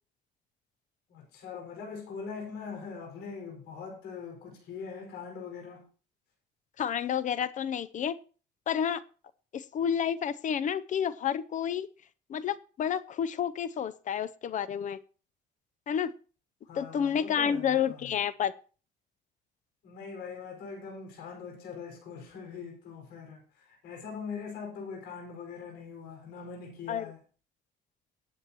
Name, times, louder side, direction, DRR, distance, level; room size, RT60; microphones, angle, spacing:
voice 1, 1.1-5.8 16.6-18.1 19.8-27.2, left 5 dB, 80° left, 5.4 m, -42 dB
voice 2, 6.8-8.1 8.7-9.0 9.5-11.9 12.3-15.0 15.9-16.1 16.7-18.5 26.9-27.1, left 8 dB, 45° left, 0.6 m, -30 dB
19.0 x 8.4 x 3.0 m
cardioid pair, 110°, 17 cm